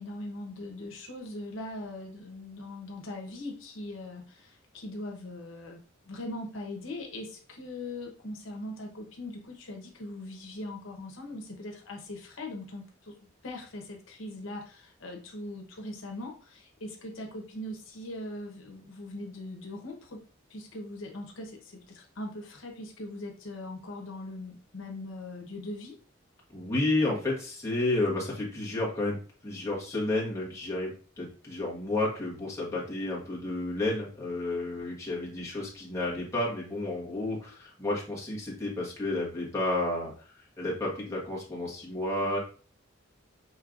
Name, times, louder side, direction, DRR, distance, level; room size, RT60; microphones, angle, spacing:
voice 1, 0.0-13.1 13.4-20.2 20.5-26.0, left 1 dB, 80° left, 1 dB, 1.0 m, -40 dB
voice 2, 26.5-29.2 29.4-40.1 40.6-42.4, left 2 dB, 15° left, -5 dB, 1.3 m, -31 dB
5.4 x 3.2 x 2.5 m, 0.41 s
head